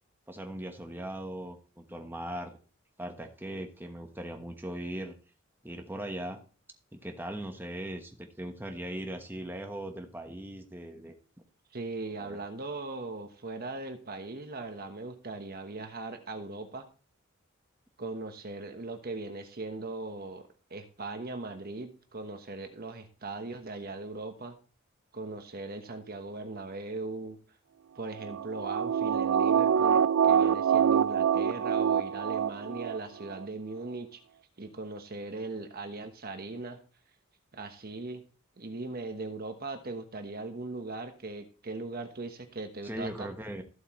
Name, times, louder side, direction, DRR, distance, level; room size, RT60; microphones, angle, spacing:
voice 1, 0.3-2.6 3.0-5.1 5.6-6.4 6.9-11.1 12.2-12.4 42.8-43.6, right 1 dB, 10° right, 4 dB, 1.3 m, -39 dB
voice 2, 11.7-16.9 18.0-24.6 25.1-27.4 27.9-34.2 34.6-36.8 37.5-38.2 38.6-43.3, right 3 dB, 45° right, 6 dB, 1.2 m, -39 dB
sound 1, 28.2-33.0 33.3-33.4, right 8 dB, 70° right, 0.4 m, -25 dB
14.0 x 7.8 x 3.2 m, 0.37 s
head